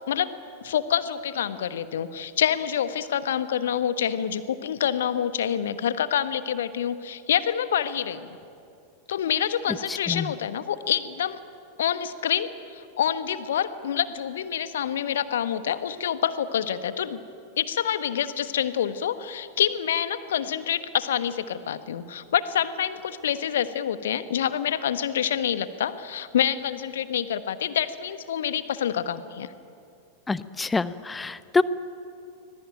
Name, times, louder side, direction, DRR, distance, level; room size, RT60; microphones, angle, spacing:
voice 1, 0.6-8.4 9.1-11.4 11.8-17.2 17.6-29.5, left 9 dB, 60° left, 12 dB, 1.2 m, -27 dB
voice 2, 9.9-10.3 30.3-31.6, left 3 dB, 10° left, 16 dB, 0.8 m, -26 dB
25.0 x 20.5 x 9.1 m, 2.5 s
figure-of-eight pair, 90°, 0 cm